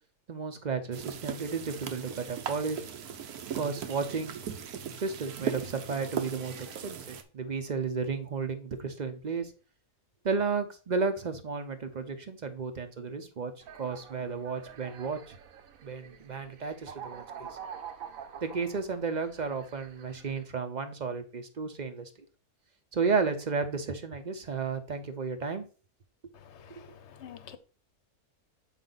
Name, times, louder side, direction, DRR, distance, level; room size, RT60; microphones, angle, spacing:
voice 1, 0.3-2.8 3.5-4.4 5.0-9.5 10.2-13.5 13.8-15.4 15.8-17.5 18.4-22.1 22.9-25.6 26.8-26.9, right 5 dB, 45° right, 0.6 m, -33 dB
sound 1, 0.9-7.2, right 8 dB, 90° right, 1.3 m, -38 dB
sound 2, 13.6-20.4, right 8 dB, 70° right, 1.1 m, -46 dB
voice 2, 26.3-27.6, left 8 dB, 55° left, 0.9 m, -48 dB
7.3 x 5.0 x 3.9 m
omnidirectional pair, 1.6 m